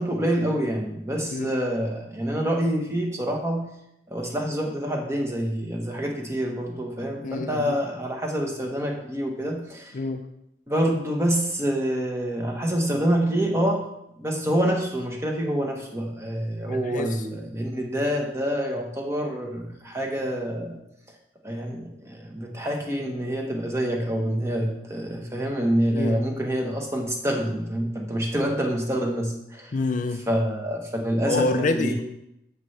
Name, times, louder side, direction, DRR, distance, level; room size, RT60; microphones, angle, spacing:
voice 1, 0.0-3.7 4.1-9.9 10.7-13.8 14.2-20.8 21.4-29.8 30.3-32.0, equal, 15° right, 0 dB, 1.2 m, -26 dB
voice 2, 7.2-7.8 9.9-10.2 16.7-17.2 25.9-26.2 29.7-30.2 31.3-32.0, left 3 dB, 40° left, 8 dB, 0.4 m, -27 dB
13.5 x 5.5 x 3.3 m, 0.83 s
head